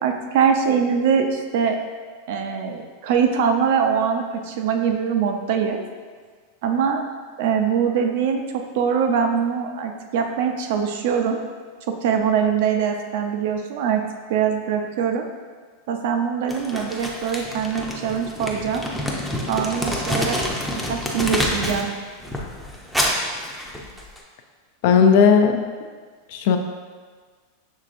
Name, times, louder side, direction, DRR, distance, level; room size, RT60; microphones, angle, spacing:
voice 1, 0.0-1.8 2.3-5.8 6.6-7.0 7.4-11.4 11.9-14.0 14.3-15.3 15.9-18.8 19.5-20.4 20.7-21.9, right 7 dB, 65° right, 4 dB, 0.5 m, -22 dB
Crumpling crinkling, 16.5-21.9 22.2-24.2, left 1 dB, ahead, 0.5 m, -27 dB
voice 2, 24.8-25.6 26.3-26.6, left 6 dB, 60° left, 5 dB, 0.4 m, -15 dB
6.4 x 3.2 x 2.5 m, 1.5 s
supercardioid pair, 145°, 0 cm